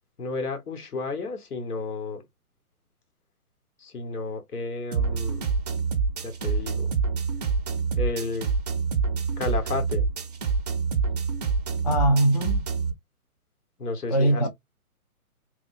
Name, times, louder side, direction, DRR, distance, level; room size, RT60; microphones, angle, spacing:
voice 1, 0.2-2.2 3.8-5.5 6.2-6.9 8.0-8.5 9.4-10.1 13.8-14.5, left 3 dB, 85° left, 1.3 m, -32 dB
sound 1, 4.9-12.9, right 5 dB, 30° right, 0.5 m, -26 dB
voice 2, 11.8-12.7 14.1-14.5, right 1 dB, 30° left, 0.4 m, -21 dB
3.4 x 2.2 x 2.5 m
hypercardioid pair, 145°, 44 cm